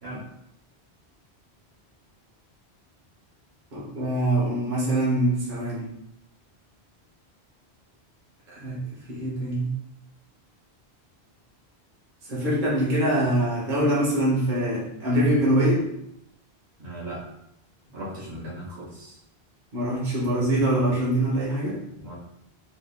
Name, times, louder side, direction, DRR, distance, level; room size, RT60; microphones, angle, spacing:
voice 1, 3.7-5.9 8.5-8.8 9.1-9.7 12.3-15.9 19.7-21.8, right 1 dB, 50° right, -6 dB, 1.1 m, -24 dB
voice 2, 16.8-17.2 17.9-19.2 22.0-22.1, right 1 dB, 75° right, -6 dB, 1.4 m, -37 dB
3.6 x 3.3 x 2.2 m, 0.79 s
omnidirectional pair, 1.1 m